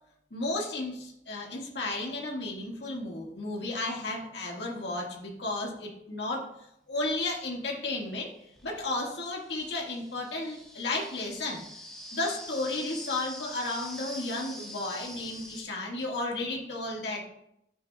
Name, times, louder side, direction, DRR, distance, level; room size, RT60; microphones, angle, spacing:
voice 1, 0.3-6.5 6.9-8.3 8.6-11.6 12.1-17.3, left 2 dB, 70° left, -1 dB, 1.8 m, -33 dB
sound 1, 7.1-7.2 8.1-15.6, left 1 dB, ahead, 1.3 m, -45 dB
10.5 x 8.3 x 2.3 m, 0.79 s
head